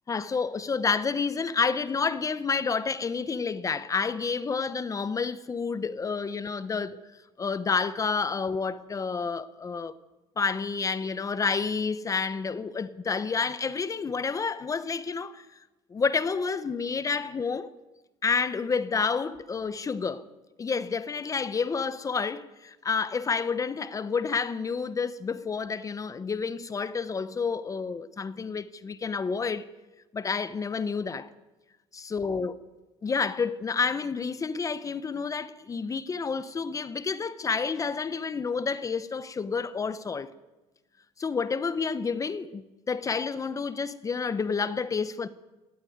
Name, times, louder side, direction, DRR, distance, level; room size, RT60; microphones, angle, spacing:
voice 1, 0.1-7.0 7.4-10.0 10.4-15.5 15.9-17.7 18.2-20.2 20.6-29.6 30.1-31.3 31.9-32.5 33.0-40.3 41.2-45.3, left 5 dB, 25° left, 0.8 m, -29 dB
18.5 x 16.0 x 9.3 m
cardioid pair, 145°, 14 cm